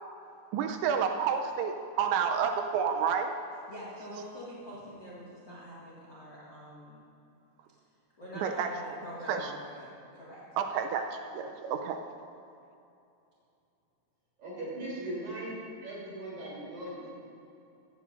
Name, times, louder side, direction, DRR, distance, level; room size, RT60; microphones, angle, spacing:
voice 1, 0.5-3.3 8.3-9.0 9.3-9.6 10.6-12.0, right 7 dB, 85° right, 5 dB, 2.9 m, -30 dB
voice 2, 3.5-7.1 8.2-10.5, equal, 40° left, -7 dB, 1.6 m, -45 dB
voice 3, 14.4-17.1, right 1 dB, 40° right, -6 dB, 4.4 m, -39 dB
16.5 x 14.5 x 2.6 m, 2.7 s
omnidirectional pair, 5.2 m